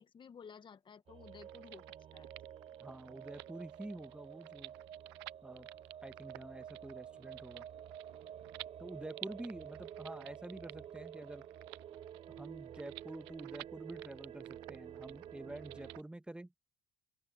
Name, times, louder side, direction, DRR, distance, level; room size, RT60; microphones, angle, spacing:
voice 1, 0.0-1.8 2.1-2.3, left 6 dB, 40° left, 1.8 m, -54 dB
sound 1, 1.1-16.0, right 9 dB, 50° right, 4.1 m, -50 dB
sound 2, 1.2-16.0, right 22 dB, 90° right, 0.6 m, -54 dB
voice 2, 2.8-4.7 5.4-5.7 6.0-7.7 8.8-11.5 12.3-16.5, right 1 dB, 5° right, 1.5 m, -48 dB
supercardioid pair, 80°, 13 cm